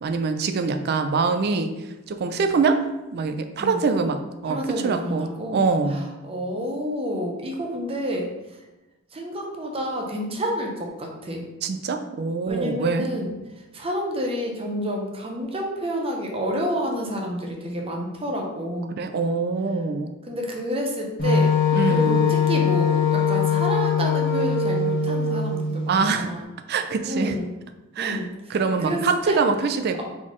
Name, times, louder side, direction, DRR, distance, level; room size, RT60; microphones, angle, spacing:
voice 1, 0.0-1.8 2.1-2.8 3.1-6.1 11.6-13.1 19.0-20.1 21.7-22.3 25.9-26.3 26.7-27.4 28.0-28.2 28.5-30.0, right 4 dB, 50° right, 7 dB, 0.4 m, -24 dB
voice 2, 4.5-5.6 6.2-8.3 9.1-10.7 11.0-11.4 12.5-13.3 13.7-18.9 20.3-21.5 21.9-26.4 27.1-27.5 28.0-28.3 28.8-29.0 29.3-29.4, equal, 25° right, 0 dB, 0.8 m, -29 dB
Wind instrument woodwind instrument, 21.2-25.9, left 5 dB, 45° left, 1.1 m, -21 dB
4.1 x 3.7 x 3.1 m, 1.1 s
head